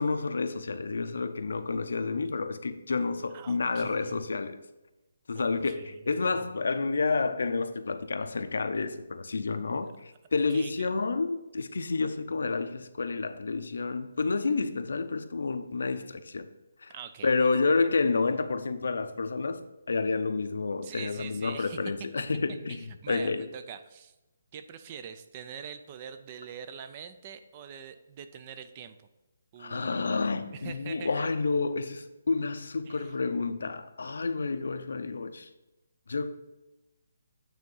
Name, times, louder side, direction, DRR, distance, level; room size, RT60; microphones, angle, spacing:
voice 1, 0.0-4.6 5.3-16.5 16.8-16.9 17.2-23.4 29.6-35.5 36.1-36.3, left 4 dB, 75° left, 0.6 m, -30 dB
voice 2, 3.3-4.3 5.3-5.9 9.8-9.9 10.5-10.9 16.9-17.3 17.6-17.7 20.8-21.8 22.7-24.2 24.5-29.0 29.5-30.1 30.5-31.1 32.8-33.1, right 8 dB, 25° right, 0.4 m, -44 dB
9.2 x 3.6 x 5.4 m
hypercardioid pair, 170°, 0 cm